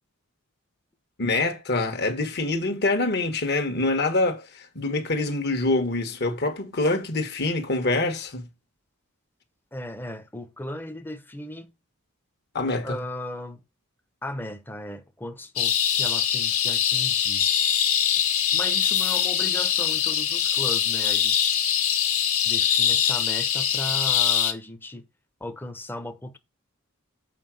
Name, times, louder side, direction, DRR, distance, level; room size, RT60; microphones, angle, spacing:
voice 1, 1.2-8.5 12.5-13.0, left 2 dB, 50° left, 1.6 m, -25 dB
voice 2, 9.7-11.7 12.8-13.6 14.2-17.5 18.5-21.6 22.4-25.0 25.4-26.4, left 1 dB, 10° left, 0.9 m, -36 dB
sound 1, 15.6-24.5, left 9 dB, 85° left, 1.9 m, -23 dB
7.6 x 4.8 x 6.3 m
head